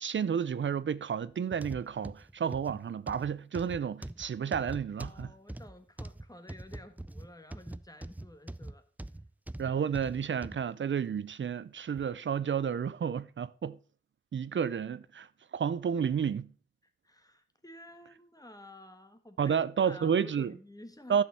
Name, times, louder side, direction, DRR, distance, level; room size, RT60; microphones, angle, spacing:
voice 1, 0.0-5.3 9.6-13.8 14.3-15.3 15.5-16.5 19.4-20.5 21.1-21.2, right 7 dB, 80° right, 0.4 m, -31 dB
sound 1, 1.5-10.6 11.2-11.3 12.0-12.1, right 1 dB, 10° right, 0.4 m, -43 dB
voice 2, 5.0-8.8 16.8-21.2, left 1 dB, 20° left, 1.3 m, -51 dB
11.5 x 6.5 x 4.2 m
wide cardioid pair, 75°, 19 cm